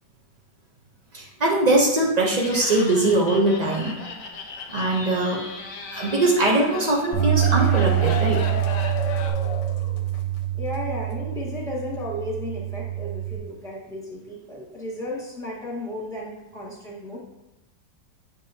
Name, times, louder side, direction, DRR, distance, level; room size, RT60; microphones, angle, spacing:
voice 1, 1.1-4.0 4.7-5.4 5.9-8.4, right 2 dB, 75° right, -2 dB, 0.3 m, -21 dB
Laughter, 2.4-9.3, left 3 dB, 60° left, 1.0 m, -38 dB
sound 1, 6.8-10.4 10.7-10.8 11.1-11.2, left 7 dB, 75° left, 1.2 m, -33 dB
Bass guitar, 7.1-13.4, right 13 dB, 50° right, 1.2 m, -25 dB
voice 2, 10.5-17.2, left 1 dB, ahead, -5 dB, 1.6 m, -34 dB
7.5 x 5.4 x 2.7 m, 0.98 s
omnidirectional pair, 2.0 m